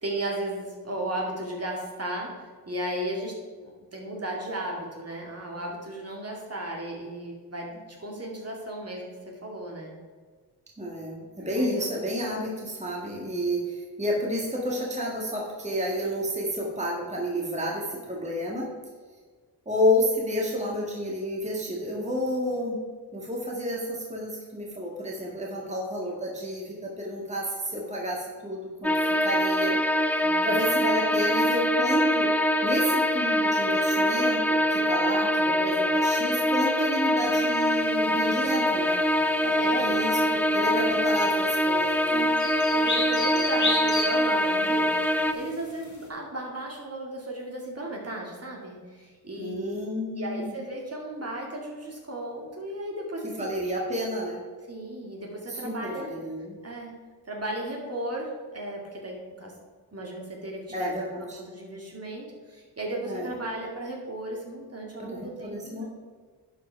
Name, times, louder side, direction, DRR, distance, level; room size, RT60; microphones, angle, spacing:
voice 1, 0.0-3.3 3.6-9.9 11.4-11.9 13.0-13.3 25.5-25.7 30.2-30.5 38.2-38.7 39.1-40.2 40.6-40.9 42.1-49.8 50.1-53.6 54.7-56.1 56.6-56.9 57.2-59.5 59.9-61.0 61.3-65.9, right 1 dB, 35° right, -1 dB, 2.2 m, -35 dB
voice 2, 10.8-18.7 19.7-22.8 23.1-29.8 30.4-32.3 32.6-39.0 39.7-42.3 49.4-50.5 53.4-54.4 55.5-56.6 60.7-61.4 63.0-63.3 65.0-65.9, equal, 15° right, -2 dB, 1.9 m, -30 dB
sound 1, 28.8-45.3, equal, 5° left, 0.4 m, -24 dB
sound 2, 37.2-46.0, left 2 dB, 45° left, 2.0 m, -33 dB
11.0 x 4.9 x 4.6 m, 1.5 s
cardioid pair, 65°, 40 cm